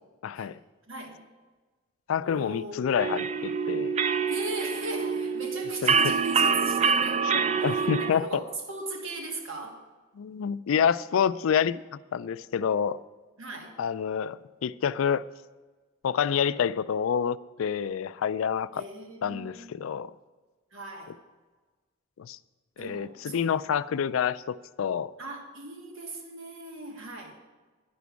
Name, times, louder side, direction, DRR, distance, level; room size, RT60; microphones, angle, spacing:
voice 1, 0.2-0.6 2.1-3.9 5.8-6.0 7.2-8.4 10.1-13.0 13.8-15.3 16.0-18.8 19.2-20.1 22.2-22.4 22.8-25.1, left 7 dB, 85° left, 0.4 m, -28 dB
voice 2, 2.2-2.9 4.3-7.3 7.6-9.8 13.4-13.7 18.7-19.7 20.7-21.1 22.8-23.5 25.2-27.4, right 2 dB, 80° right, 1.5 m, -38 dB
sound 1, 3.0-8.1, right 5 dB, 30° right, 0.3 m, -26 dB
10.0 x 6.1 x 8.2 m
head